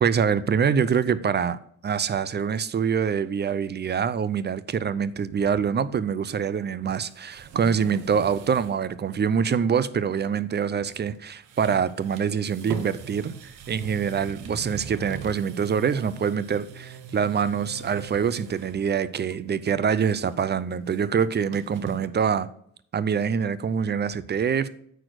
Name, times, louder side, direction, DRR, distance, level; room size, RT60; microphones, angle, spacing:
voice 1, 0.0-22.5 22.9-24.7, right 7 dB, 35° right, 0.5 m, -25 dB
sound 1, 6.8-8.8 9.1-9.2 10.9-11.2 11.4-18.8 19.2-19.6 19.9-22.0, right 5 dB, 85° right, 1.1 m, -41 dB
9.1 x 4.4 x 6.4 m
cardioid pair, 90°, 30 cm